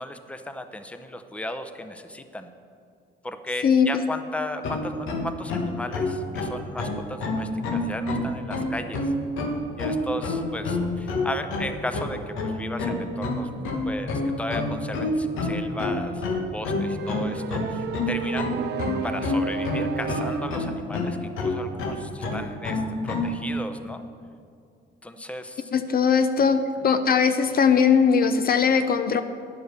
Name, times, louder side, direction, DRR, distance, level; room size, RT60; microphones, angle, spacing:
voice 1, 0.0-2.5 3.2-9.1 9.8-18.5 19.0-24.0 25.0-25.7, left 1 dB, 5° left, 8 dB, 0.6 m, -35 dB
sound 1, 4.6-23.4, left 2 dB, 90° left, 1.3 m, -27 dB
sound 2, 16.8-20.8, right 8 dB, 60° right, 0.6 m, -34 dB
voice 2, 25.7-29.2, left 6 dB, 50° left, 10 dB, 0.5 m, -20 dB
9.8 x 6.9 x 6.6 m, 2.3 s
cardioid pair, 90°, 20 cm